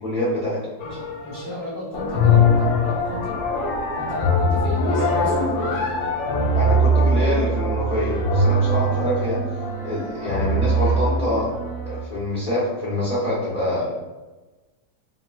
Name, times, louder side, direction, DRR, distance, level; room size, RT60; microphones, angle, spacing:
voice 1, 0.0-0.6 6.5-9.4 9.8-11.5 11.9-13.9, left 1 dB, 55° left, -9 dB, 0.5 m, -25 dB
sound 1, 0.8-1.6 1.9-12.0, equal, 75° left, 1.1 m, -21 dB
voice 2, 0.8-3.4 4.0-5.9 8.9-9.0 13.7-13.9, equal, 50° right, -8 dB, 0.8 m, -34 dB
3.0 x 2.8 x 2.3 m, 1.2 s
omnidirectional pair, 1.9 m